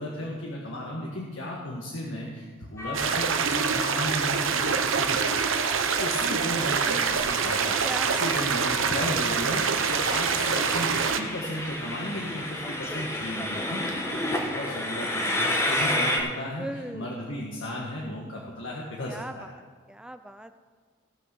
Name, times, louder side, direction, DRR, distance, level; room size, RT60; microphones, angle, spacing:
voice 1, 0.0-5.5 6.0-19.4, left 1 dB, 75° left, -3 dB, 1.6 m, -35 dB
Train, 2.8-16.2, left 1 dB, 15° left, 1.3 m, -32 dB
sound 1, 2.9-11.2, right 6 dB, 80° right, 0.8 m, -25 dB
voice 2, 7.8-8.2 15.9-16.2 16.6-17.1 19.1-19.3 19.9-20.5, right 1 dB, 5° right, 9 dB, 0.4 m, -37 dB
17.0 x 6.3 x 6.2 m, 1.5 s
head